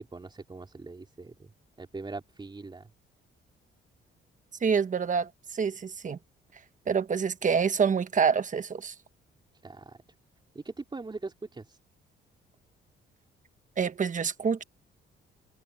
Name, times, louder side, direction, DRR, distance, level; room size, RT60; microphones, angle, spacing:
voice 1, 0.0-1.5 1.8-2.9 9.6-10.0 10.5-11.8, right 3 dB, 25° right, 3.9 m, -41 dB
voice 2, 4.6-6.2 6.9-8.9 13.8-14.6, right 6 dB, 40° right, 1.4 m, -27 dB
cardioid pair, 90°, 20 cm